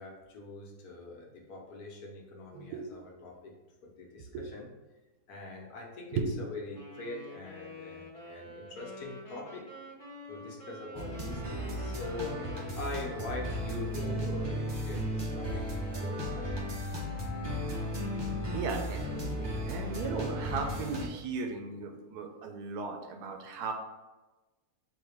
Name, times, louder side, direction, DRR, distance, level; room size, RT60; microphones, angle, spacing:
voice 1, 0.0-3.5 3.8-4.7 5.3-9.7 10.3-12.4 12.7-16.5, left 3 dB, 70° left, -1 dB, 1.4 m, -43 dB
voice 2, 2.5-2.9 4.3-4.4 6.1-6.4 18.5-23.7, right 4 dB, 85° right, 4 dB, 1.2 m, -36 dB
Wind instrument woodwind instrument, 6.7-13.7, left 1 dB, 25° left, 1.2 m, -48 dB
sound 1, 11.0-21.1, equal, 35° right, 0.4 m, -35 dB
3.8 x 2.8 x 4.8 m, 1.1 s
omnidirectional pair, 1.7 m